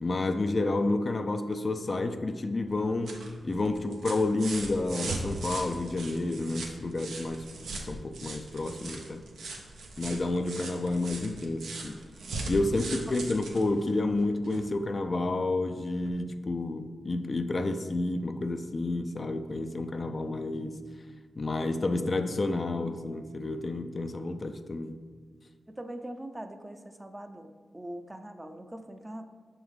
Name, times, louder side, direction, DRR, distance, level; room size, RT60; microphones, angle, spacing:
voice 1, 0.0-7.5 7.9-9.2 10.0-12.0 12.5-20.8 21.4-25.0, left 2 dB, 45° left, 8 dB, 0.4 m, -30 dB
sound 1, 2.7-14.7 16.0-16.1, right 2 dB, 85° right, 0.7 m, -40 dB
voice 2, 25.7-29.2, right 1 dB, 20° right, 7 dB, 0.5 m, -42 dB
6.1 x 3.7 x 4.7 m, 1.5 s
cardioid pair, 50°, 0 cm